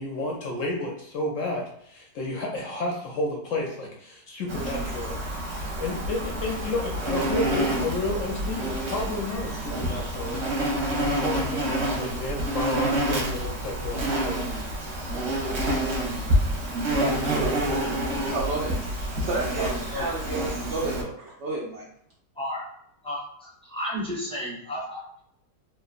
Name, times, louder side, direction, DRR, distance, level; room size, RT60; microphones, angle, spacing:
voice 1, 0.0-5.3 5.8-14.8, left 2 dB, 70° left, -1 dB, 0.7 m, -32 dB
Insect, 4.5-21.0, right 1 dB, 60° right, 1.0 m, -28 dB
voice 2, 16.7-17.4 17.7-17.9 19.6-20.1 22.4-22.6 23.0-25.0, equal, 5° left, -6 dB, 0.4 m, -33 dB
voice 3, 18.3-21.8, right 3 dB, 75° right, -4 dB, 0.6 m, -31 dB
3.0 x 2.3 x 2.4 m, 0.70 s
omnidirectional pair, 1.8 m